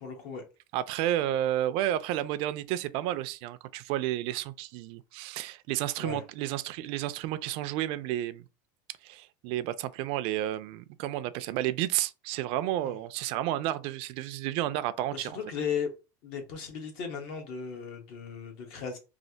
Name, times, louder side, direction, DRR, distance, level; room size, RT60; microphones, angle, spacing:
voice 1, 0.0-0.4 6.0-6.2 12.8-12.9 15.1-15.9 16.2-19.0, left 6 dB, 60° left, 1.0 m, -36 dB
voice 2, 0.7-8.5 9.0-15.4, right 13 dB, 55° right, 0.3 m, -31 dB
3.2 x 2.4 x 2.7 m
supercardioid pair, 130°, 11 cm